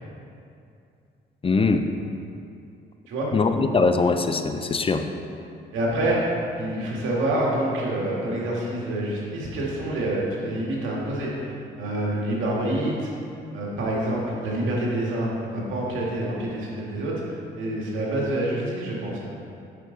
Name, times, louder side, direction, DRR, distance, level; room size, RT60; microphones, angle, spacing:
voice 1, 1.4-1.9 3.3-5.1, left 4 dB, 30° left, 7 dB, 0.5 m, -21 dB
voice 2, 5.7-13.1 13.5-19.3, right 1 dB, 85° right, -4 dB, 2.0 m, -27 dB
8.3 x 6.3 x 3.9 m, 2.6 s
cardioid pair, 90°, 20 cm